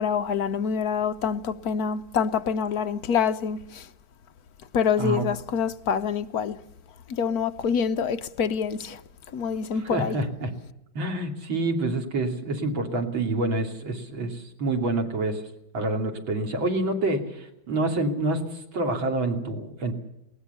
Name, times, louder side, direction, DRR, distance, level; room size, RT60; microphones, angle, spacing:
voice 1, 0.0-3.9 4.7-6.6 7.1-9.0 9.3-10.2, left 7 dB, 60° left, 1.2 m, -26 dB
voice 2, 9.8-10.5 11.0-15.4 15.7-20.0, right 2 dB, 80° right, 3.5 m, -27 dB
20.0 x 19.0 x 6.8 m
omnidirectional pair, 2.1 m